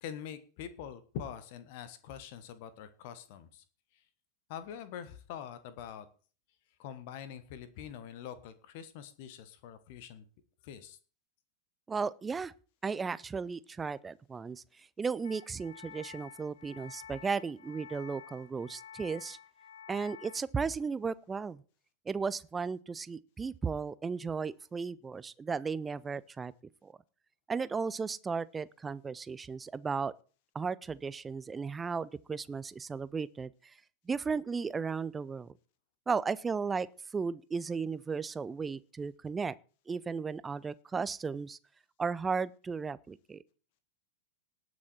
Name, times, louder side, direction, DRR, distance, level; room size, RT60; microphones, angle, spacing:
voice 1, 0.0-3.6 4.5-6.0 6.8-10.2 10.6-11.0, left 9 dB, 50° left, 1.3 m, -44 dB
voice 2, 11.9-12.5 12.8-19.4 19.9-21.6 22.1-26.5 26.8-26.9 27.5-30.1 30.5-33.5 34.1-35.5 36.1-36.9 37.1-39.5 39.9-41.6 42.0-43.4, right 5 dB, 15° right, 0.6 m, -35 dB
sound 1, 15.2-20.4, left 8 dB, 70° left, 0.7 m, -50 dB
19.0 x 6.3 x 4.5 m
figure-of-eight pair, 90°, 0 cm